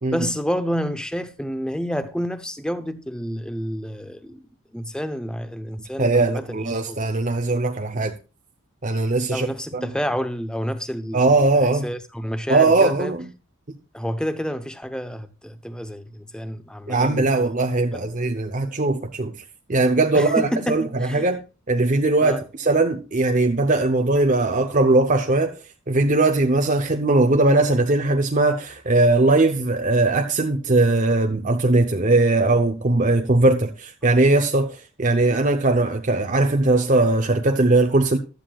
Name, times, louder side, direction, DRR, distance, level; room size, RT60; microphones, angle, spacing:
voice 1, 0.1-4.4 4.7-7.0 9.3-11.2 11.8-13.1 13.9-17.3 17.9-18.0 20.1-21.3 22.2-22.4, equal, 5° left, 0.8 m, -29 dB
voice 2, 6.0-8.1 8.8-9.9 11.1-11.9 12.5-13.3 16.9-19.3 19.7-21.4 21.7-25.5 25.9-38.2, right 2 dB, 35° right, 0.8 m, -20 dB
15.5 x 12.0 x 2.4 m
head